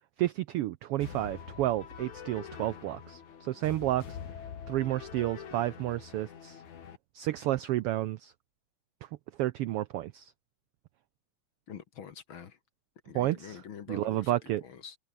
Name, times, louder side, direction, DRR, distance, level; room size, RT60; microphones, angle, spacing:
voice 1, 0.2-4.2 4.7-6.6 7.1-8.3 9.4-10.3 13.1-13.6 13.9-14.6, right 14 dB, 85° right, 1.3 m, -31 dB
sound 1, 1.0-7.0, left 7 dB, 80° left, 4.0 m, -45 dB
voice 2, 11.7-12.6 13.1-15.0, left 7 dB, 50° left, 1.9 m, -46 dB
omnidirectional pair, 3.4 m